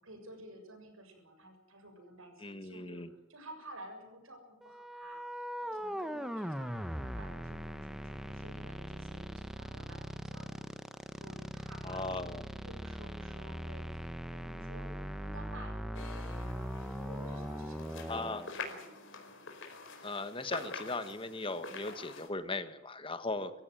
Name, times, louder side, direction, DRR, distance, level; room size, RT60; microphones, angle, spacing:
voice 1, 0.0-10.7 11.1-12.1 12.6-19.0, right 1 dB, 80° right, 5 dB, 7.3 m, -53 dB
voice 2, 2.4-3.1 11.8-12.4 18.1-18.4 20.0-23.5, left 2 dB, 25° left, 10 dB, 1.5 m, -38 dB
sound 1, 4.6-18.5, equal, ahead, 1.2 m, -40 dB
sound 2, 15.9-22.3, left 4 dB, 65° left, 4.7 m, -46 dB
25.5 x 15.5 x 9.2 m, 0.95 s
head